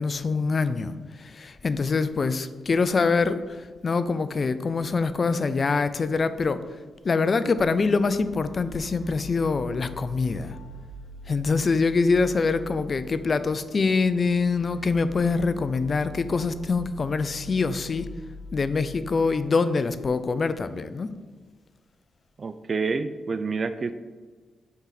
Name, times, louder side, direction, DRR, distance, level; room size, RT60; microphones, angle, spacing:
voice 1, 0.0-6.6 7.0-10.6 11.3-18.1 18.5-21.1, left 4 dB, 45° left, 13 dB, 0.4 m, -24 dB
sound 1, 7.6-19.3, left 2 dB, 85° left, 0.8 m, -43 dB
voice 2, 22.4-23.9, right 4 dB, 45° right, 11 dB, 0.3 m, -28 dB
5.5 x 4.6 x 3.9 m, 1.4 s
supercardioid pair, 55°, 0 cm